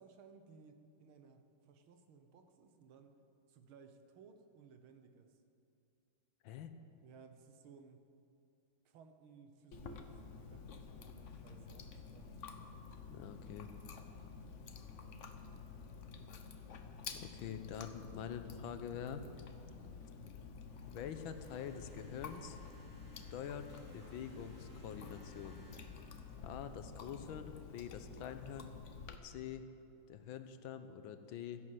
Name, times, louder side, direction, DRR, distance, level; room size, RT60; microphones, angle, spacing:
voice 1, 0.0-3.2 3.5-5.4 7.0-8.1 8.9-12.3 17.4-17.6, right 5 dB, 85° right, 7 dB, 1.9 m, -60 dB
Chewing mastication, 9.7-29.2, left 5 dB, 50° left, 0.9 m, -51 dB
voice 2, 13.1-13.7 17.2-19.2 20.9-22.6 23.3-25.6 26.4-28.7 29.2-29.7 30.1-31.6, left 8 dB, 80° left, 10 dB, 1.6 m, -46 dB
sound 1, 20.7-26.8, equal, 35° right, 4.8 m, -59 dB
13.0 x 11.0 x 7.6 m, 2.7 s
omnidirectional pair, 2.2 m